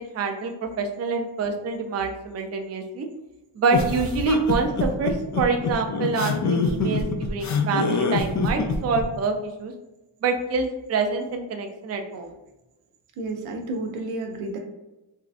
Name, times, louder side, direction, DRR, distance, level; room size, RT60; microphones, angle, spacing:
voice 1, 0.0-3.1 3.6-9.7 10.2-12.3, right 4 dB, 35° right, 5 dB, 0.4 m, -26 dB
sound 1, 3.7-9.0, left 4 dB, 40° left, 0.4 m, -25 dB
voice 2, 13.2-14.6, right 2 dB, 90° right, 3 dB, 0.7 m, -31 dB
3.6 x 2.2 x 2.4 m, 1.0 s
cardioid pair, 80°, 50 cm